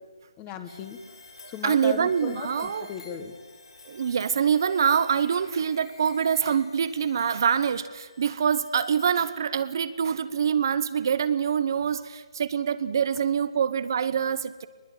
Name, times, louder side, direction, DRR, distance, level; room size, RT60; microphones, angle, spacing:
voice 1, 0.4-1.0 1.5-3.3, left 8 dB, 15° left, 10 dB, 1.4 m, -37 dB
sound 1, 0.7-9.7, left 3 dB, 75° left, 6.8 m, -50 dB
voice 2, 1.4-2.9 3.8-14.7, right 7 dB, 40° right, 13 dB, 0.9 m, -25 dB
22.0 x 20.5 x 9.1 m, 1.3 s
hypercardioid pair, 165°, 3 cm